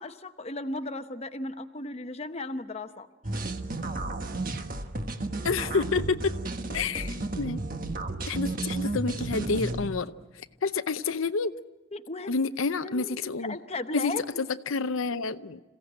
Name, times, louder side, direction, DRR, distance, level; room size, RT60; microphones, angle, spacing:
voice 1, 0.0-3.1 11.9-12.3 12.8-13.2 13.5-14.2, left 2 dB, 30° left, 8 dB, 0.9 m, -35 dB
sound 1, 3.2-9.9, right 2 dB, 45° right, 1.4 m, -33 dB
voice 2, 5.4-6.4 6.7-7.6 8.3-11.5 12.3-13.6 13.9-15.6, left 4 dB, 80° left, 11 dB, 0.7 m, -29 dB
27.0 x 16.0 x 8.8 m, 1.2 s
head